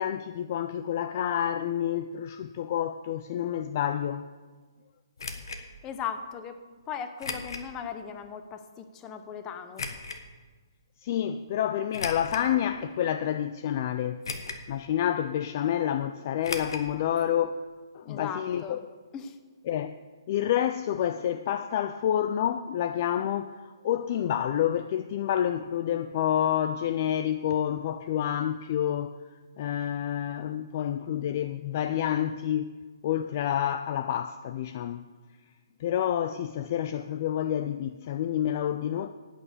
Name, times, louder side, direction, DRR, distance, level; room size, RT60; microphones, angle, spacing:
voice 1, 0.0-4.2 11.0-14.2 14.5-17.7 17.9-18.8 19.7-20.0 20.3-29.2 29.6-32.7 33.0-35.1 35.8-39.1, left 10 dB, 35° left, 0.4 m, -28 dB
sound 1, 5.2-5.6 7.2-7.7 8.2-8.3 9.8-10.2 11.9-12.5 13.1-13.2 14.2-14.7 15.0-15.1 16.4-16.9 17.2-17.3 17.5-17.6, left 4 dB, 75° left, 1.3 m, -36 dB
voice 2, 5.8-6.6 6.9-9.9 18.0-18.8 19.1-19.4, left 7 dB, 15° left, 0.7 m, -38 dB
11.0 x 9.0 x 6.8 m
hypercardioid pair, 165°, 2 cm